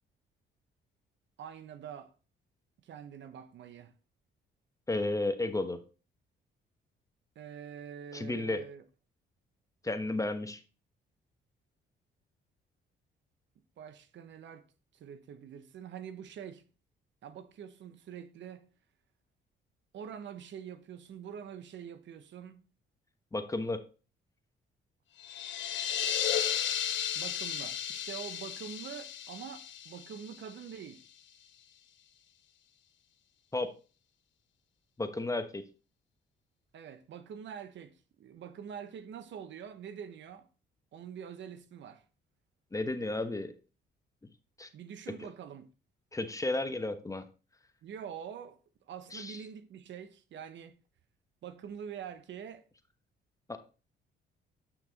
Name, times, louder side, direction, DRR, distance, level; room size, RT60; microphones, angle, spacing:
voice 1, 1.4-2.1 2.8-3.9 7.3-8.8 13.8-14.6 14.9-16.6 17.2-18.7 19.9-22.6 27.1-31.0 36.7-40.5 40.9-42.0 44.7-45.7 47.8-48.6 48.8-50.7 51.4-52.6, right 8 dB, 65° right, 1.0 m, -45 dB
voice 2, 4.9-5.8 8.1-8.6 9.8-10.6 23.3-23.8 33.5-33.7 35.0-35.6 42.7-43.5 44.6-44.7 46.1-47.2 49.1-49.4 53.5-53.6, left 2 dB, 15° left, 1.1 m, -33 dB
sound 1, 25.2-30.8, left 9 dB, 70° left, 0.9 m, -34 dB
8.6 x 6.0 x 4.0 m
cardioid pair, 90°, 20 cm